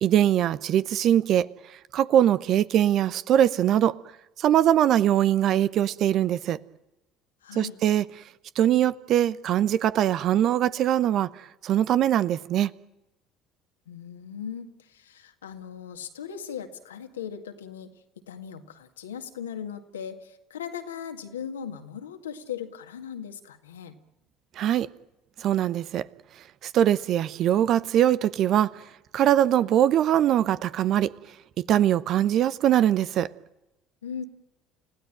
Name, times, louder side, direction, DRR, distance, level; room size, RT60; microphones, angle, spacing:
voice 1, 0.0-1.5 1.9-4.0 4.4-6.6 7.5-8.0 8.6-12.7 24.6-24.9 25.4-26.1 26.6-28.7 29.1-31.1 31.7-33.3, right 11 dB, 55° right, 0.9 m, -22 dB
voice 2, 7.4-7.8 13.9-17.9 18.3-24.0 34.0-34.2, left 8 dB, 85° left, 2.0 m, -38 dB
30.0 x 16.0 x 9.1 m
hypercardioid pair, 60°, 0 cm